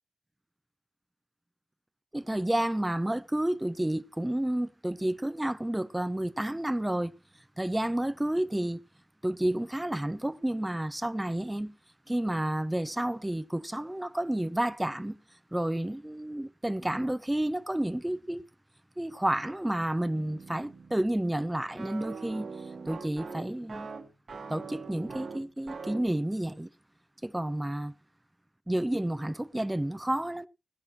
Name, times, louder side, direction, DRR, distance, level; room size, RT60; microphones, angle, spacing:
voice 1, 2.1-7.1 7.6-8.8 9.2-11.7 12.1-15.2 15.5-18.4 19.0-22.5 22.9-23.9 24.5-26.7 27.2-27.9 28.7-30.5, right 1 dB, 10° right, 0.5 m, -30 dB
sound 1, 20.1-26.1, right 4 dB, 50° right, 1.6 m, -43 dB
17.5 x 10.5 x 2.9 m
wide cardioid pair, 110°, 0 cm